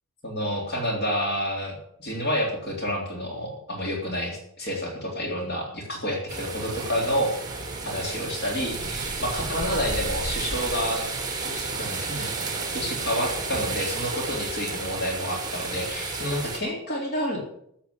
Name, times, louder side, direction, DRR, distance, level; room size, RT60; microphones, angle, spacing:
voice 1, 0.2-7.3 7.8-17.4, equal, 50° left, 0 dB, 3.6 m, -29 dB
sound 1, 6.3-16.6, right 4 dB, 20° right, 3.2 m, -32 dB
14.5 x 8.3 x 8.7 m, 0.72 s
head